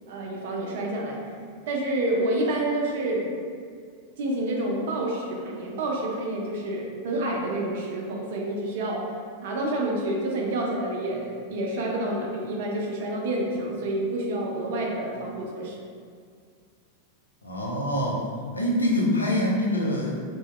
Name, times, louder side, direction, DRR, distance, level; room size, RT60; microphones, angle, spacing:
voice 1, 0.1-1.2 1.7-3.3 4.2-9.0 9.4-15.8, right 1 dB, 55° right, -1 dB, 0.5 m, -28 dB
voice 2, 17.4-18.2 18.5-20.1, left 1 dB, 80° left, -3 dB, 0.4 m, -25 dB
2.9 x 2.0 x 3.0 m, 2.1 s
figure-of-eight pair, 90°, 0 cm